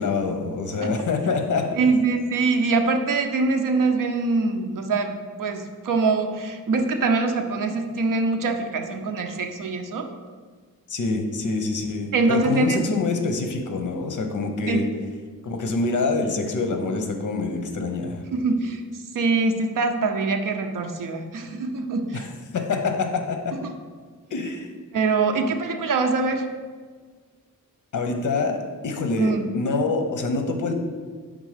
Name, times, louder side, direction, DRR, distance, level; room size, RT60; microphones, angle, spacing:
voice 1, 0.0-1.7 10.9-14.8 15.4-18.2 22.1-22.3 22.5-23.5 24.3-24.7 27.9-30.7, left 3 dB, 65° left, 5 dB, 0.8 m, -26 dB
voice 2, 1.8-10.1 12.1-12.9 14.7-14.8 18.3-22.3 23.6-23.7 24.9-26.5 29.2-29.5, right 3 dB, 70° right, 5 dB, 0.6 m, -24 dB
5.2 x 3.7 x 4.9 m, 1.6 s
wide cardioid pair, 135°, 33 cm